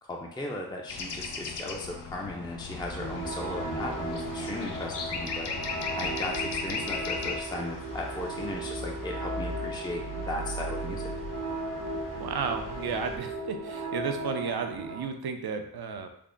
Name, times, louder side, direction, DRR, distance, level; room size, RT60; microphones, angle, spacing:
voice 1, 0.0-11.1, left 2 dB, 10° left, 0 dB, 0.5 m, -37 dB
sound 1, 0.9-7.4, left 4 dB, 80° left, 0.6 m, -36 dB
sound 2, 2.7-13.2, right 1 dB, 50° left, 1.2 m, -41 dB
sound 3, 3.0-15.0, right 2 dB, 90° right, 0.9 m, -37 dB
voice 2, 12.1-16.1, right 5 dB, 65° right, 6 dB, 0.6 m, -33 dB
3.5 x 2.1 x 3.8 m, 0.71 s
cardioid pair, 50°, 41 cm